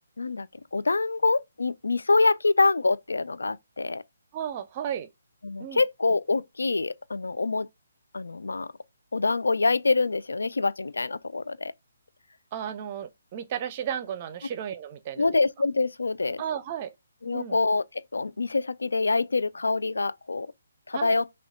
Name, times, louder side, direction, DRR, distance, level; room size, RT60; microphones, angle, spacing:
voice 1, 0.2-4.0 5.4-7.7 8.1-8.7 9.1-11.7 15.2-16.4 17.2-20.5 20.9-21.3, left 3 dB, 70° left, 0.4 m, -25 dB
voice 2, 4.3-5.1 5.6-5.8 12.5-15.3 16.4-16.9 17.3-17.6 20.9-21.2, right 9 dB, 30° right, 0.6 m, -34 dB
6.0 x 2.3 x 3.6 m
figure-of-eight pair, 140°, 0 cm